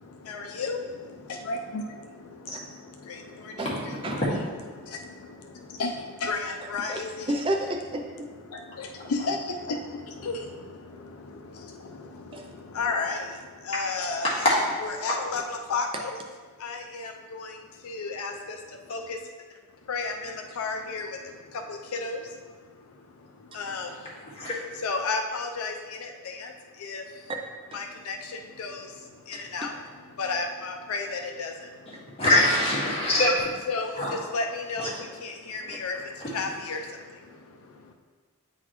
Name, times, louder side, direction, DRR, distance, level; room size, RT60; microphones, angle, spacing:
voice 1, 0.0-4.2 4.7-7.4 8.5-14.3 14.8-16.2 16.6-19.3 19.8-27.3 27.7-29.8 30.1-32.2 33.7-37.9, left 3 dB, 70° left, 3 dB, 0.5 m, -34 dB
voice 2, 3.6-4.2 6.9-8.3 12.3-12.5 23.5-23.6 27.7-27.8 29.3-29.7 32.2-32.3 35.6-35.8, right 1 dB, 25° right, 3 dB, 0.4 m, -32 dB
voice 3, 14.2-14.6 24.4-24.5 32.2-33.5 34.0-34.1 34.8-34.9 36.2-36.3, left 1 dB, 30° left, -7 dB, 1.7 m, -23 dB
9.1 x 3.9 x 3.0 m, 1.5 s
head